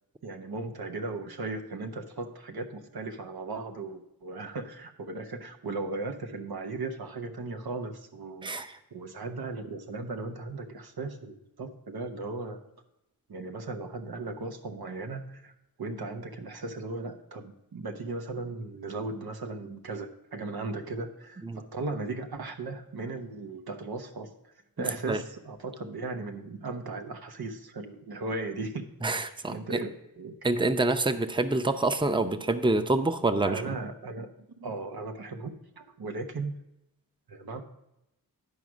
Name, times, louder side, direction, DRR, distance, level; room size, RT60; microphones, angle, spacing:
voice 1, 0.2-8.5 8.9-12.6 13.3-15.5 15.8-28.8 29.5-30.3 33.4-34.3 34.6-36.5 37.3-37.6, right 3 dB, 90° right, 4 dB, 1.0 m, -37 dB
voice 2, 29.0-29.8 30.4-33.6, right 2 dB, 15° right, 9 dB, 0.6 m, -26 dB
11.0 x 4.8 x 6.2 m, 0.87 s
wide cardioid pair, 50°, 36 cm